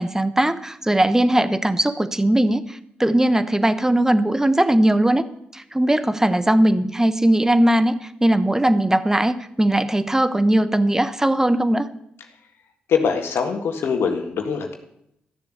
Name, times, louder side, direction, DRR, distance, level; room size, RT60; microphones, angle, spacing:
voice 1, 0.0-5.2 5.5-11.9, right 1 dB, 10° right, 13 dB, 1.1 m, -19 dB
voice 2, 12.9-14.7, left 6 dB, 70° left, 4 dB, 1.7 m, -23 dB
13.5 x 7.0 x 8.1 m, 0.77 s
supercardioid pair, 45°, 4 cm